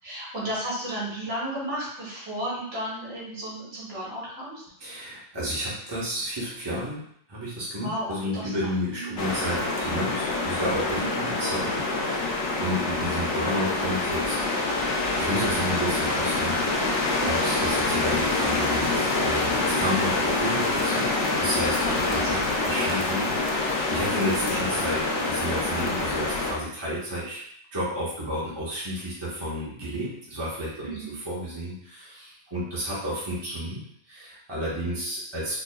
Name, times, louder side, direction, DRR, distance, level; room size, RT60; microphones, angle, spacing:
voice 1, 0.0-4.6 7.8-9.2 11.0-11.3 17.2-17.4 22.0-22.8 23.1-23.4 30.8-31.2, right 1 dB, 65° right, -8 dB, 1.9 m, -34 dB
voice 2, 4.8-7.0 7.3-14.4 14.7-14.8 15.2-21.1 21.4-21.8 22.1-22.4 22.6-27.4 27.7-31.0 31.2-33.8 34.1-35.6, equal, 20° right, -8 dB, 1.2 m, -31 dB
sound 1, 9.2-26.5, left 2 dB, 85° left, 1.0 m, -26 dB
4.3 x 3.0 x 2.3 m, 0.67 s
omnidirectional pair, 1.2 m